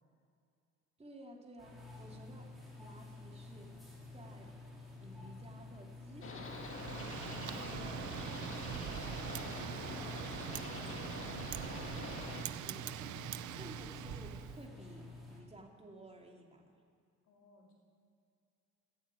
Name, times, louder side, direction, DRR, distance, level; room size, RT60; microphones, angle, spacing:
voice 1, 1.0-2.5 2.8-3.7 4.1-4.5 5.0-6.9 7.5-8.0 8.4-10.2 12.6-13.2 13.6-16.8, right 1 dB, 20° right, 1 dB, 2.7 m, -55 dB
sound 1, 1.6-15.4, left 3 dB, ahead, 4.1 m, -50 dB
sound 2, 6.2-12.4, left 3 dB, 45° left, 1.9 m, -45 dB
Wind, 6.5-14.6, right 11 dB, 75° right, 0.6 m, -43 dB
voice 2, 7.3-7.7 12.7-13.4 17.2-17.7, left 3 dB, 90° left, -1 dB, 3.7 m, -61 dB
14.5 x 8.4 x 9.3 m, 2.4 s
cardioid pair, 90°, 30 cm